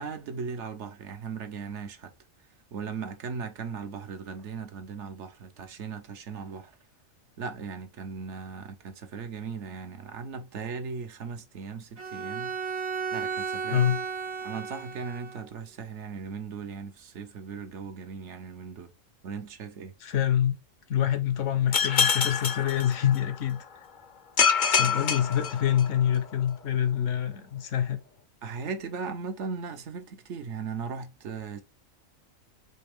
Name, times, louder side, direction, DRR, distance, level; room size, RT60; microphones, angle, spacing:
voice 1, 0.0-2.1 2.7-6.7 7.4-12.6 13.1-13.8 14.4-18.9 19.2-19.9 28.4-31.6, right 5 dB, 65° right, 1.0 m, -38 dB
Bowed string instrument, 12.0-15.5, right 6 dB, 85° right, 1.6 m, -34 dB
voice 2, 20.0-20.5 20.9-23.6 24.7-28.0, left 10 dB, 70° left, 1.0 m, -26 dB
sound 1, 21.7-23.5 24.4-26.2, left 6 dB, 50° left, 0.6 m, -26 dB
4.4 x 3.2 x 3.4 m
omnidirectional pair, 1.4 m